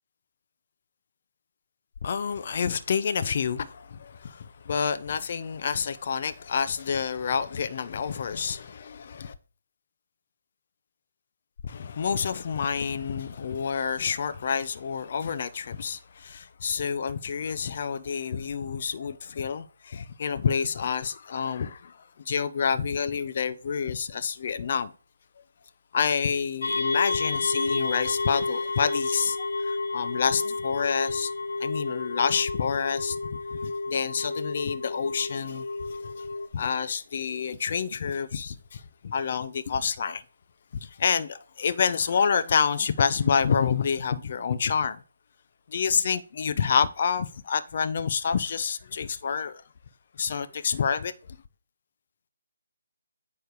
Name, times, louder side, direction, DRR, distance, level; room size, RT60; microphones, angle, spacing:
voice 1, 2.0-9.3 11.6-24.9 25.9-31.3 31.6-33.2 33.5-40.2 40.8-45.0 45.7-49.6 50.2-51.1, left 6 dB, 45° left, 0.7 m, -28 dB
sound 1, 26.6-36.5, left 3 dB, 75° left, 1.1 m, -30 dB
9.1 x 3.3 x 6.7 m
figure-of-eight pair, 155°, 0 cm